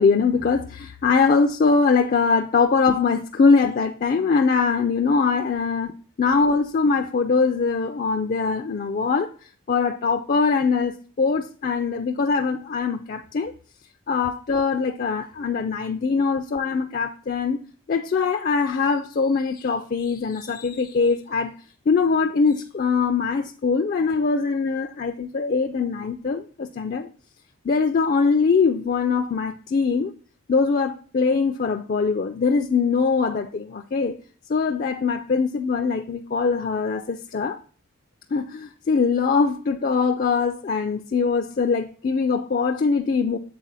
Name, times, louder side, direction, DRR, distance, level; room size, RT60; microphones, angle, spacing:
voice 1, 0.0-5.9 6.2-9.3 9.7-13.5 14.1-17.6 17.9-21.5 21.9-27.1 27.6-30.1 30.5-34.2 34.5-37.6 38.3-43.4, left 4 dB, 40° left, 0.4 m, -22 dB
7.3 x 4.3 x 4.0 m
head